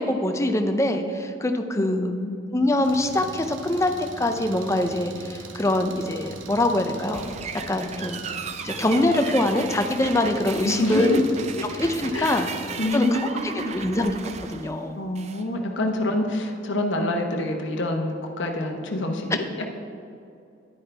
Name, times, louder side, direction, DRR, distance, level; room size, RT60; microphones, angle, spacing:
voice 1, 0.0-2.1 2.5-7.3 7.7-8.2 8.6-11.2 11.8-12.5 12.9-14.1 14.5-15.0, left 1 dB, 15° left, 5 dB, 0.5 m, -24 dB
voice 2, 1.8-2.4 10.6-11.2 12.1-12.5 12.8-13.7 15.0-19.6, left 1 dB, 75° left, 2 dB, 1.0 m, -27 dB
Engine, 2.8-12.9, right 3 dB, 85° right, 0.8 m, -41 dB
sound 1, 7.1-15.5, right 5 dB, 35° right, 0.4 m, -36 dB
10.0 x 9.8 x 3.4 m, 2.5 s
head